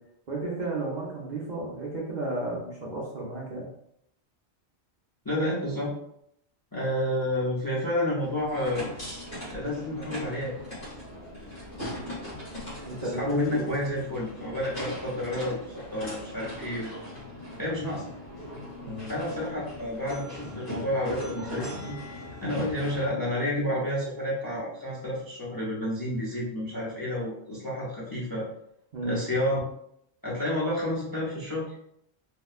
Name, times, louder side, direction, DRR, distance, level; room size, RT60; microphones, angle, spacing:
voice 1, 0.3-3.7 12.8-13.7 18.8-19.1 28.9-29.2, right 2 dB, 50° right, -3 dB, 0.6 m, -33 dB
voice 2, 5.2-5.9 6.7-8.9 9.5-10.5 13.0-16.9 17.6-18.1 19.1-22.0 22.4-28.5 29.0-29.6 30.2-31.7, left 1 dB, 25° left, -5 dB, 0.5 m, -30 dB
sound 1, 8.2-23.1, left 1 dB, 60° left, 1.6 m, -40 dB
3.5 x 2.1 x 2.4 m, 0.73 s
omnidirectional pair, 1.2 m